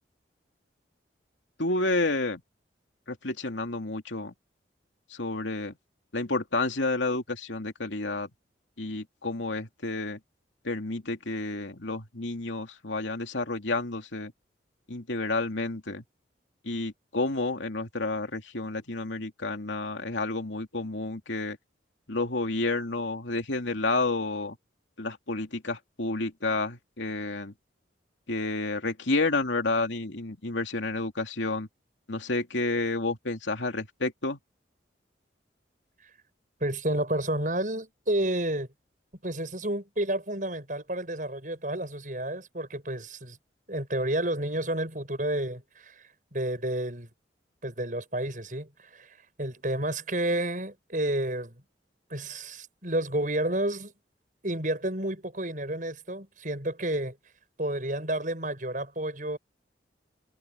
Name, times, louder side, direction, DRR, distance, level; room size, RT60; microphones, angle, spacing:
voice 1, 1.6-2.4 3.1-4.3 5.1-5.7 6.1-8.3 8.8-10.2 10.6-14.3 14.9-16.0 16.6-21.6 22.1-24.6 25.0-27.5 28.3-31.7 32.1-34.4, left 2 dB, 85° left, 2.7 m, -30 dB
voice 2, 36.6-38.7 39.2-43.4 43.7-46.0 46.3-47.1 47.6-51.6 52.1-53.9 54.4-57.2 57.6-59.4, right 1 dB, 45° right, 7.9 m, -30 dB
head